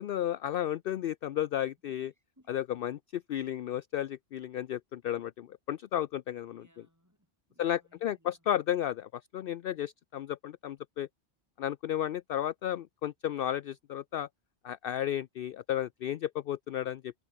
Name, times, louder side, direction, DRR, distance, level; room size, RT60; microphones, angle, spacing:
voice 1, 0.0-2.1 2.5-6.7 7.6-11.1 11.6-14.3 14.6-17.1, left 11 dB, 60° left, 0.7 m, -33 dB
voice 2, 2.0-2.5 3.4-3.6 6.5-8.4, equal, 15° right, 6.4 m, -66 dB
omnidirectional pair, 1.2 m